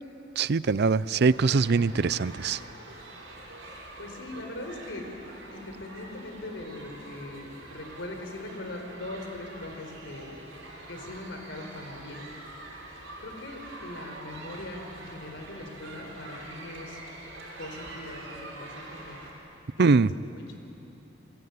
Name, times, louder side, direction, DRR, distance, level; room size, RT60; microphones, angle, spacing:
voice 1, 0.4-2.6 19.8-20.1, right 4 dB, 60° right, 18 dB, 0.5 m, -22 dB
sound 1, 1.3-19.3, right 2 dB, 90° right, 6.2 m, -45 dB
voice 2, 4.0-5.0 5.5-10.3 10.9-12.3 13.2-17.0 17.6-19.2 19.7-20.5, left 1 dB, 70° left, 4 dB, 4.5 m, -41 dB
26.5 x 23.5 x 9.6 m, 2.9 s
head